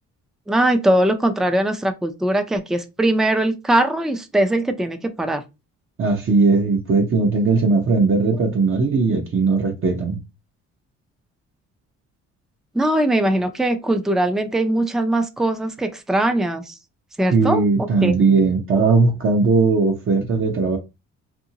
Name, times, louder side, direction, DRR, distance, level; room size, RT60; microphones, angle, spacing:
voice 1, 0.5-5.4 12.7-16.8 17.2-17.6 18.0-18.1, right 1 dB, ahead, 0.4 m, -20 dB
voice 2, 6.0-10.2 17.3-20.8, right 4 dB, 45° right, 0.8 m, -18 dB
2.7 x 2.6 x 2.8 m
cardioid pair, 90°, 30 cm